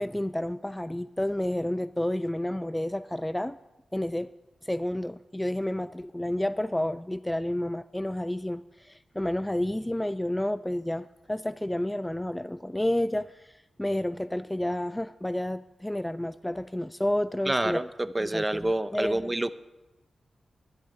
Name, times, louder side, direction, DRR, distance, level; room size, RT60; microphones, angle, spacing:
voice 1, 0.0-3.6 3.9-4.3 4.6-17.8 18.3-19.2, left 1 dB, 10° left, 14 dB, 0.3 m, -30 dB
voice 2, 17.5-19.5, right 1 dB, 20° right, 14 dB, 0.7 m, -28 dB
11.5 x 6.5 x 9.2 m, 1.1 s
cardioid pair, 50°, 0 cm